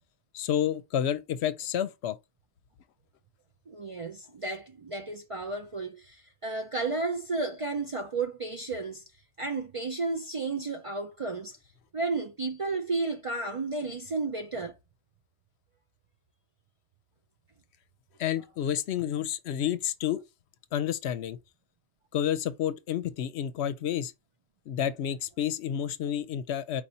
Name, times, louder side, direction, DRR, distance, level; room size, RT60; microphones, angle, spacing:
voice 1, 0.3-2.2 18.2-20.2 20.7-21.4 22.1-24.1 24.7-26.8, left 10 dB, 75° left, 0.8 m, -30 dB
voice 2, 3.7-9.0 9.4-11.6 11.9-14.7, right 3 dB, 45° right, 0.4 m, -32 dB
4.6 x 2.7 x 4.2 m
omnidirectional pair, 1.1 m